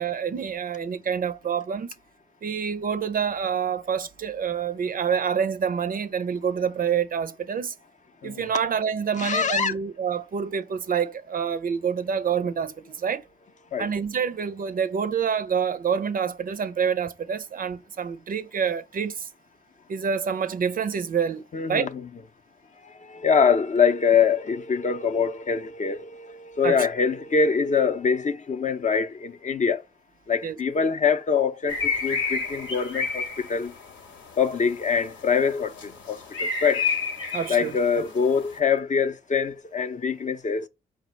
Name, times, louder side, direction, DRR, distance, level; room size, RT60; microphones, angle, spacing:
voice 1, 0.0-1.9 2.4-7.7 8.2-13.2 13.8-19.3 19.9-21.4 21.7-21.9 26.6-26.9 30.4-30.6 37.3-37.7, right 7 dB, 45° right, 0.5 m, -27 dB
voice 2, 9.2-9.7 13.7-13.9 21.5-22.0 23.0-29.8 30.3-33.7 34.4-36.9 37.5-40.7, left 6 dB, 40° left, 0.5 m, -24 dB
sound 1, 31.7-38.6, left 4 dB, 80° left, 0.9 m, -31 dB
4.7 x 2.1 x 4.2 m
hypercardioid pair, 45°, 20 cm